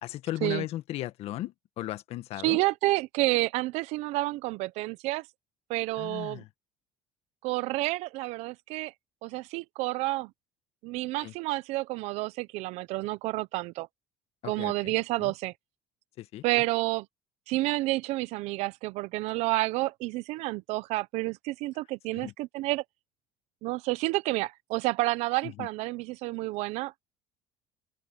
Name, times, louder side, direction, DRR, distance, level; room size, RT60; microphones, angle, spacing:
voice 1, 0.0-2.6 6.0-6.5 11.2-11.3 14.4-14.9 15.2-15.3 16.2-16.4 22.1-22.3 25.4-25.7, left 14 dB, 65° left, 1.6 m, -36 dB
voice 2, 2.4-5.2 5.7-6.4 7.4-8.9 9.2-10.3 10.8-13.9 14.4-15.5 16.4-17.1 17.5-22.8 23.6-27.1, right 20 dB, 70° right, 0.8 m, -29 dB
open air
supercardioid pair, 100°, 11 cm